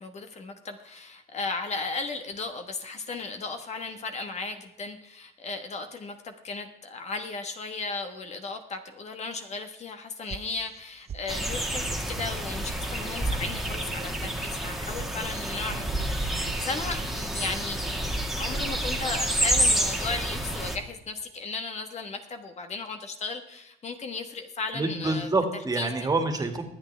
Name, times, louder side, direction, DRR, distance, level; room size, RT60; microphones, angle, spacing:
voice 1, 0.0-25.3 25.8-26.1, left 4 dB, 40° left, 7 dB, 1.3 m, -36 dB
sound 1, 10.3-10.8 11.1-11.6 11.9-12.0 12.3-12.8 13.1-13.6 13.8-14.3 14.6-15.1 15.4-15.9 16.1-16.6, right 8 dB, 40° right, 0.7 m, -40 dB
sound 2, 11.3-20.8, right 1 dB, ahead, 1.8 m, -29 dB
voice 2, 24.7-26.6, right 3 dB, 20° right, 5 dB, 2.1 m, -27 dB
23.5 x 8.7 x 3.4 m, 0.81 s
cardioid pair, 110°, 17 cm